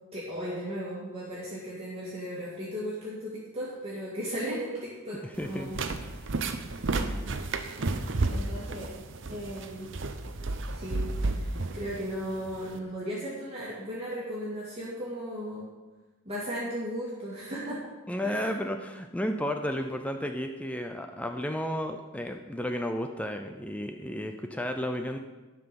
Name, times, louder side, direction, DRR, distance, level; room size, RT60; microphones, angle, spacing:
voice 1, 0.1-5.8 6.7-6.8 8.1-8.9 9.3-9.9 10.7-15.7 16.3-17.8 18.2-18.5, equal, 25° right, -8 dB, 2.1 m, -36 dB
voice 2, 5.2-5.7 8.9-9.0 18.1-25.2, equal, 5° left, 5 dB, 0.5 m, -33 dB
sound 1, 5.3-12.8, right 2 dB, 55° right, 0.7 m, -32 dB
11.5 x 5.9 x 6.9 m, 1.2 s
head